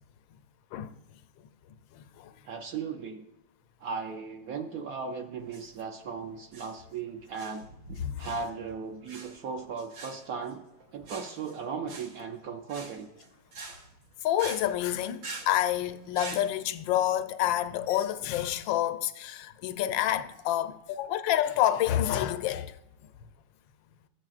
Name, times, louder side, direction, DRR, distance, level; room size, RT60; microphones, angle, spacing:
voice 1, 1.9-2.4 8.0-8.3 14.2-22.8, left 12 dB, 85° left, 1.3 m, -28 dB
voice 2, 2.4-3.2 3.8-7.7 8.2-10.6 10.9-13.1, right 5 dB, 65° right, 0.9 m, -37 dB
sound 1, 5.4-16.5, right 4 dB, 85° right, 1.9 m, -45 dB
14.0 x 7.4 x 2.4 m
omnidirectional pair, 2.0 m